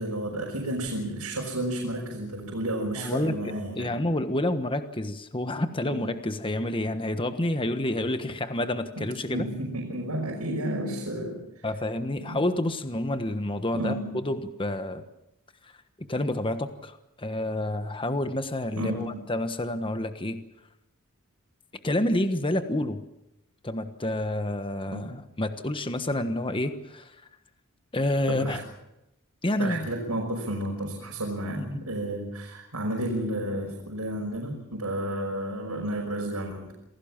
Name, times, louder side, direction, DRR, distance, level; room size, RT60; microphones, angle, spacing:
voice 1, 0.0-3.9 5.8-6.1 9.0-11.7 12.2-12.4 13.7-14.2 18.8-19.2 24.9-25.0 28.3-28.6 29.6-36.7, right 1 dB, 80° right, 0 dB, 5.6 m, -32 dB
voice 2, 3.0-9.5 11.6-15.0 16.0-20.4 21.8-23.0 23.6-27.1 27.9-28.6 29.4-29.9 31.6-31.8, left 1 dB, 25° left, 9 dB, 1.3 m, -29 dB
27.5 x 17.5 x 7.4 m, 0.90 s
head